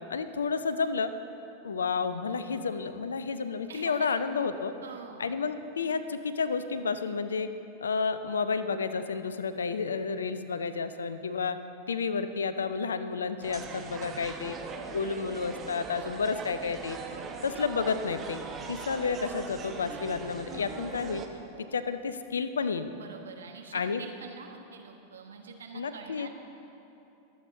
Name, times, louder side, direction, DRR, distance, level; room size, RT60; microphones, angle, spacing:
voice 1, 0.1-1.1 1.6-4.7 5.2-7.5 7.8-11.6 11.9-14.6 14.9-17.0 17.4-18.4 18.7-21.2 21.7-22.9 23.7-24.0 25.7-26.3, left 5 dB, 70° left, 12 dB, 0.6 m, -31 dB
voice 2, 3.7-4.2 4.8-5.4 17.1-17.3 22.9-26.3, right 6 dB, 65° right, 2 dB, 1.3 m, -46 dB
sound 1, 13.4-21.3, right 5 dB, 25° right, 1.1 m, -40 dB
23.0 x 8.0 x 3.9 m, 2.8 s
figure-of-eight pair, 90°, 0 cm